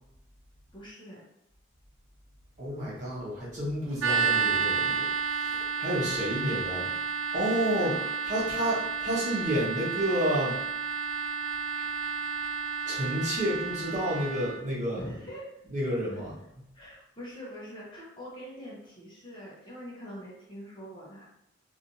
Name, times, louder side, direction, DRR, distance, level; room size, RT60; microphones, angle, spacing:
voice 1, 0.7-1.2 7.7-8.1 15.0-15.6 16.1-16.2 16.7-21.2, equal, 25° left, -6 dB, 0.9 m, -43 dB
voice 2, 2.6-6.9 7.3-8.0 8.2-10.6 12.9-15.0 15.7-16.3, equal, 40° right, -6 dB, 1.1 m, -30 dB
sound 1, 4.0-14.6, right 6 dB, 80° right, 0.3 m, -31 dB
3.3 x 2.7 x 2.7 m, 0.81 s
head